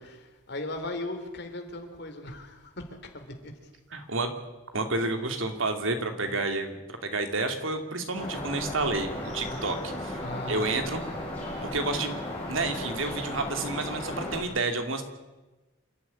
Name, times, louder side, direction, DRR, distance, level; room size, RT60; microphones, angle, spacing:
voice 1, 0.0-3.5 6.2-6.4 9.4-9.8 10.2-10.7 14.0-14.4, left 2 dB, 55° left, 6 dB, 3.4 m, -38 dB
voice 2, 3.9-4.3 4.7-10.2 10.5-11.0 11.6-12.2 12.5-15.0, right 3 dB, 80° right, 6 dB, 2.7 m, -30 dB
sound 1, 8.1-14.4, left 1 dB, 10° left, 7.5 m, -35 dB
27.5 x 11.5 x 9.9 m, 1.1 s
head